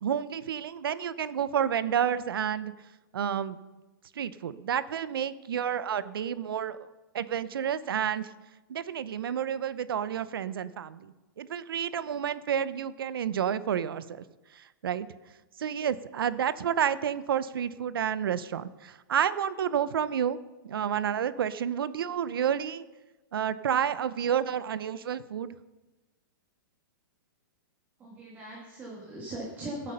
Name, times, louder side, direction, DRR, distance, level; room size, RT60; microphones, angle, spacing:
voice 1, 0.0-2.7 3.1-3.6 4.2-6.8 7.1-8.3 8.7-14.2 14.5-15.1 15.6-20.4 20.7-22.8 23.3-25.6, right 8 dB, 85° right, 15 dB, 0.7 m, -30 dB
voice 2, 28.0-29.9, right 1 dB, 15° right, -2 dB, 1.8 m, -39 dB
16.0 x 8.3 x 5.6 m, 1.1 s
hypercardioid pair, 170°, 12 cm